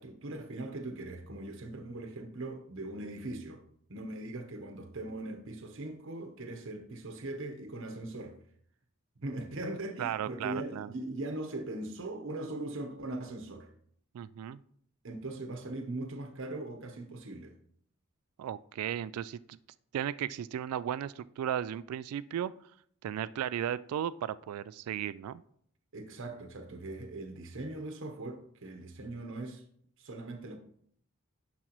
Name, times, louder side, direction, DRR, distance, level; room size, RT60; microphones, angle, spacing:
voice 1, 0.0-3.6 3.9-8.4 9.2-13.7 15.0-17.5 25.9-29.6 30.0-30.6, right 2 dB, 60° right, 0.9 m, -40 dB
voice 2, 10.0-10.9 14.1-14.6 18.4-19.6 19.9-22.5 23.0-25.4, right 10 dB, 90° right, 0.3 m, -35 dB
10.5 x 6.0 x 3.0 m
head